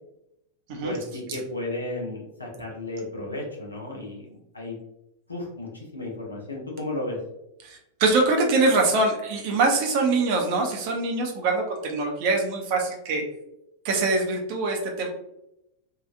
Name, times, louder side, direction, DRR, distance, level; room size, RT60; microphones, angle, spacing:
voice 1, 0.8-4.8 5.3-7.2, left 2 dB, 80° left, -1 dB, 0.7 m, -33 dB
voice 2, 7.6-13.2 13.8-15.1, right 3 dB, 45° right, 2 dB, 0.7 m, -23 dB
2.8 x 2.4 x 2.5 m, 0.84 s
figure-of-eight pair, 90°, 0 cm